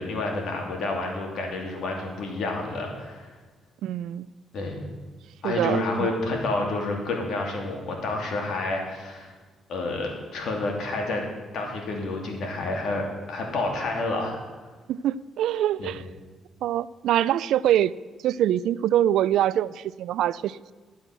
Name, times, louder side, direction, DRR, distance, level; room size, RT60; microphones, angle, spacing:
voice 1, 0.0-3.3 4.5-4.8 5.4-9.3 9.7-11.2 11.5-14.4 15.8-16.0, left 2 dB, 70° left, 1 dB, 2.8 m, -29 dB
voice 2, 3.8-4.3 5.4-6.1 14.9-16.0 16.6-17.9 18.2-20.7, right 11 dB, 80° right, 19 dB, 0.3 m, -24 dB
11.5 x 7.8 x 6.7 m, 1.3 s
cardioid pair, 90°, 0 cm